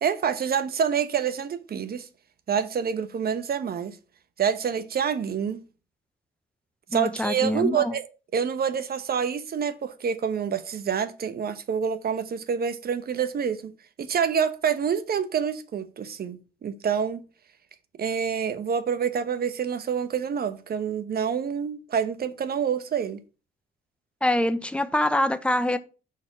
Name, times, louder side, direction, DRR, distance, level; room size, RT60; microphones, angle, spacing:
voice 1, 0.0-2.1 2.5-4.0 4.4-5.6 6.9-8.0 8.3-13.7 14.0-17.2 18.0-23.2, right 7 dB, 50° right, 1.0 m, -27 dB
voice 2, 6.9-7.9 24.2-25.8, left 1 dB, 5° left, 0.8 m, -24 dB
5.6 x 4.6 x 6.0 m
cardioid pair, 90°, 20 cm